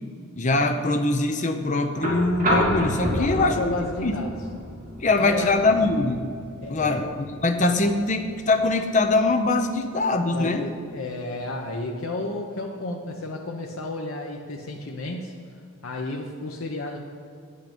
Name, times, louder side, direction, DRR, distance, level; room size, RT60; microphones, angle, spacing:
voice 1, 0.4-3.7 4.0-4.2 5.0-6.3 6.7-10.7, left 2 dB, 35° left, 6 dB, 0.7 m, -22 dB
sound 1, 1.9-10.0 11.4-11.5, equal, 40° right, 2.2 m, -30 dB
voice 2, 3.2-4.4 5.2-5.5 6.6-7.0 10.3-15.3 15.8-17.0, left 2 dB, 75° left, 1 dB, 0.8 m, -32 dB
8.9 x 8.5 x 5.2 m, 2.3 s
head